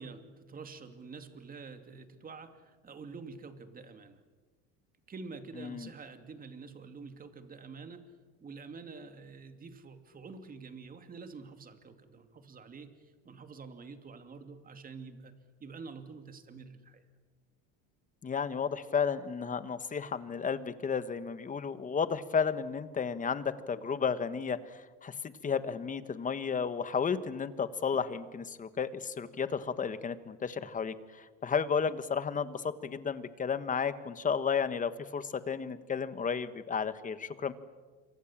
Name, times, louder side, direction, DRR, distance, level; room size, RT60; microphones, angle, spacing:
voice 1, 0.0-4.2 5.1-8.0 8.4-17.0, right 4 dB, 25° right, 7 dB, 2.7 m, -47 dB
voice 2, 5.6-5.9 18.2-25.1 25.4-37.5, left 6 dB, 25° left, 13 dB, 1.4 m, -33 dB
27.5 x 25.0 x 7.5 m, 1.4 s
cardioid pair, 130°, 34 cm